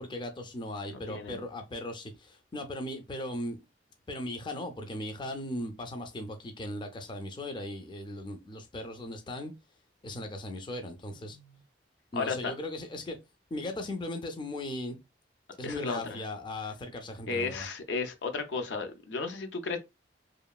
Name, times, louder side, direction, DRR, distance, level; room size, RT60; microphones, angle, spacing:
voice 1, 0.0-3.6 4.1-9.5 10.0-11.4 12.1-13.2 13.5-15.0 15.6-17.7, left 1 dB, 25° left, 0.4 m, -38 dB
voice 2, 0.9-1.4 11.3-11.6 12.1-12.5 15.6-16.2 17.3-19.8, left 4 dB, 80° left, 0.5 m, -34 dB
2.9 x 2.3 x 2.3 m
head